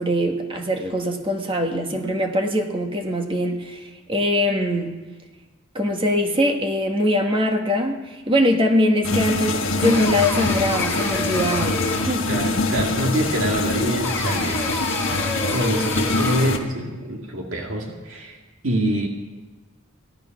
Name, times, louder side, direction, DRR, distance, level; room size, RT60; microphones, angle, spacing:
voice 1, 0.0-5.0 5.7-12.3, left 1 dB, 25° right, 3 dB, 1.6 m, -22 dB
sound 1, 9.0-16.6, left 2 dB, 65° left, 1.4 m, -24 dB
sound 2, 9.8-12.4 14.0-16.7, left 2 dB, 10° left, 2.4 m, -29 dB
voice 2, 12.3-14.7 15.3-18.4 18.6-19.1, right 1 dB, 70° right, 1 dB, 1.9 m, -25 dB
17.0 x 12.0 x 5.9 m, 1.2 s
head